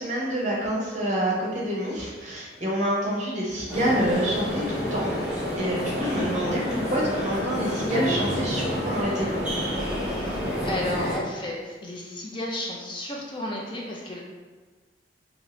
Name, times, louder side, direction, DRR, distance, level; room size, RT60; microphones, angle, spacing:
voice 1, 0.0-9.3, equal, 40° right, -4 dB, 0.8 m, -27 dB
sound 1, 3.7-11.2, equal, 5° right, 0.8 m, -29 dB
voice 2, 10.1-14.2, left 1 dB, 25° left, -2 dB, 0.4 m, -33 dB
2.8 x 2.6 x 3.1 m, 1.3 s
head